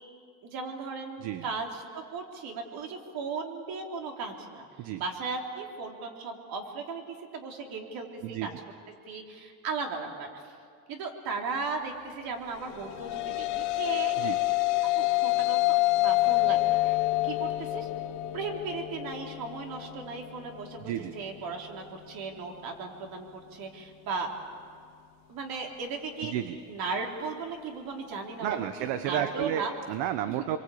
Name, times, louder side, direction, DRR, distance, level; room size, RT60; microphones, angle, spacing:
voice 1, 0.4-4.7 5.0-8.5 9.1-10.5 10.9-14.2 15.0-17.0 17.2-17.9 18.3-24.3 25.3-26.3 26.7-28.7 29.0-29.7 30.3-30.5, right 4 dB, 55° right, 2 dB, 3.8 m, -36 dB
voice 2, 1.2-1.5 4.8-5.0 8.2-8.6 14.2-14.4 20.8-21.1 26.2-26.6 28.4-30.6, right 11 dB, 70° right, 10 dB, 1.2 m, -32 dB
sound 1, 12.7-21.2, left 19 dB, 85° left, 2.6 m, -28 dB
27.0 x 23.0 x 8.7 m, 2.2 s
cardioid pair, 150°, 41 cm